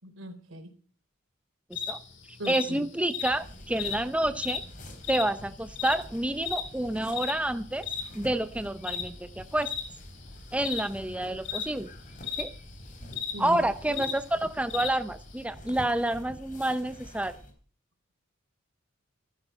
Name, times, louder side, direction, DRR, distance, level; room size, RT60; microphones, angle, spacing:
voice 1, 0.0-0.7 2.4-2.9 13.3-14.0, right 1 dB, 75° right, 7 dB, 3.7 m, -39 dB
sound 1, 1.7-15.4, left 7 dB, 60° left, 3.0 m, -36 dB
voice 2, 2.5-4.6 5.1-7.9 8.1-9.7 10.5-11.9 12.4-12.5 13.4-17.3, right 1 dB, 5° right, 10 dB, 0.6 m, -29 dB
sound 2, 3.2-17.5, equal, 40° left, 4.1 m, -47 dB
15.0 x 13.0 x 5.5 m, 0.43 s
head